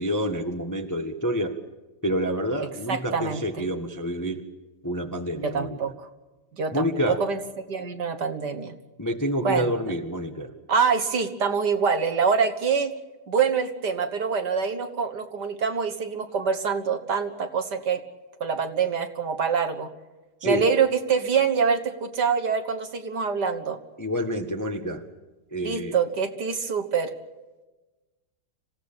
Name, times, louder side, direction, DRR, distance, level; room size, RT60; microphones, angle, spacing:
voice 1, 0.0-1.5 2.0-4.4 4.8-5.8 6.7-7.2 9.0-10.5 20.4-20.7 24.0-25.0 25.5-26.0, equal, 10° left, 5 dB, 1.1 m, -28 dB
voice 2, 2.9-3.4 5.4-6.1 6.6-7.4 7.7-8.7 9.4-9.7 10.7-12.9 13.3-18.0 18.4-19.9 20.4-23.8 25.6-27.1, right 6 dB, 55° right, 8 dB, 2.0 m, -25 dB
27.0 x 16.5 x 8.9 m, 1.1 s
omnidirectional pair, 2.3 m